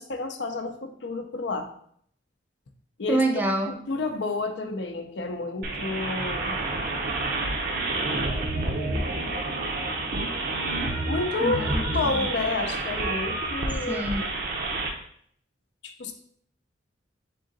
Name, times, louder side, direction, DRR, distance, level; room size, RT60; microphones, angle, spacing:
voice 1, 0.0-1.7 3.0-3.2 3.7-6.6 11.0-11.6 11.9-14.3 15.8-16.1, left 3 dB, 70° left, 6 dB, 0.5 m, -30 dB
voice 2, 3.1-3.7 11.4-12.3 13.9-14.2, right 1 dB, 10° right, 2 dB, 0.4 m, -27 dB
sound 1, 5.6-14.9, right 2 dB, 55° right, 0.6 m, -29 dB
3.7 x 3.7 x 3.9 m, 0.65 s
head